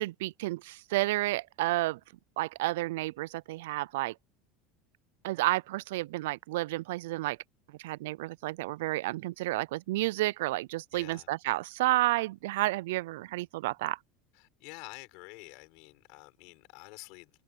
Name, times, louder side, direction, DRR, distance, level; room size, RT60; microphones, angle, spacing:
voice 1, 0.0-2.0 2.4-4.1 5.2-7.4 7.8-14.0, right 18 dB, 85° right, 0.3 m, -31 dB
voice 2, 10.9-11.3 14.3-17.3, left 27 dB, 60° left, 4.1 m, -49 dB
supercardioid pair, 165°, 0 cm